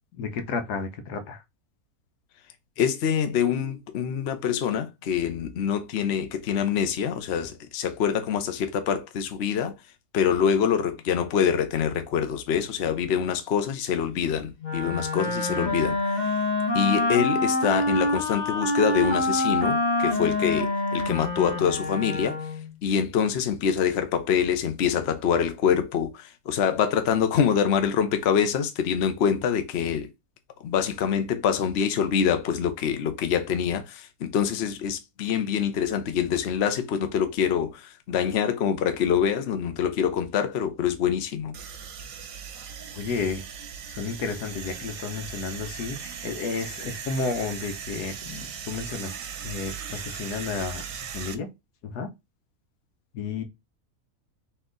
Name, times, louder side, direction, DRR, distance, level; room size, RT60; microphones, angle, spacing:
voice 1, 0.2-1.4 42.9-43.4 43.9-49.1 49.4-50.8 51.1-51.5 51.8-52.1 53.1-53.4, left 4 dB, 80° left, 1.4 m, -32 dB
voice 2, 2.8-9.7 10.1-16.4 16.7-22.4 22.8-30.1 30.6-41.5, left 8 dB, 55° left, 0.8 m, -25 dB
Wind instrument woodwind instrument, 14.6-22.7, left 2 dB, 30° left, 1.1 m, -26 dB
sound 1, 41.5-51.4, right 7 dB, 65° right, 1.0 m, -38 dB
4.2 x 2.9 x 3.8 m
omnidirectional pair, 1.7 m